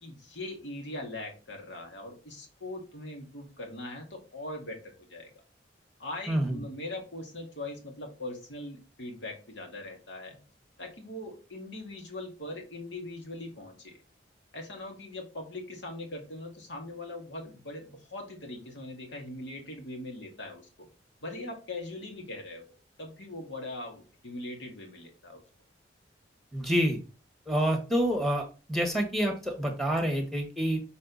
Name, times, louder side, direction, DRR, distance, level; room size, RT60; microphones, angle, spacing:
voice 1, 0.0-5.3 6.0-10.4 10.8-14.0 14.5-20.9 21.2-22.6 23.0-25.4, left 2 dB, 80° left, 1 dB, 2.2 m, -41 dB
voice 2, 6.3-6.6 26.5-27.0 27.5-30.8, equal, ahead, 4 dB, 1.5 m, -27 dB
6.6 x 4.1 x 4.0 m, 0.34 s
head